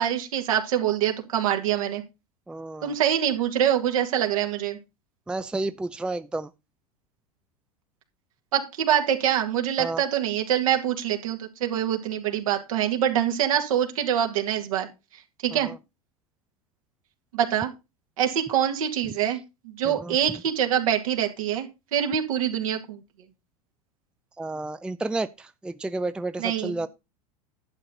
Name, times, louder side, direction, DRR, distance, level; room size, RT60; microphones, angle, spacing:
voice 1, 0.0-2.0 2.8-4.8 8.5-14.9 15.4-15.7 17.3-17.7 18.2-23.0 26.4-26.7, right 10 dB, 65° right, 2.2 m, -25 dB
voice 2, 2.5-2.9 5.3-6.5 9.8-10.0 15.5-15.8 19.8-20.2 24.4-26.9, right 2 dB, 5° right, 0.5 m, -31 dB
11.5 x 7.9 x 4.0 m
figure-of-eight pair, 85°, 19 cm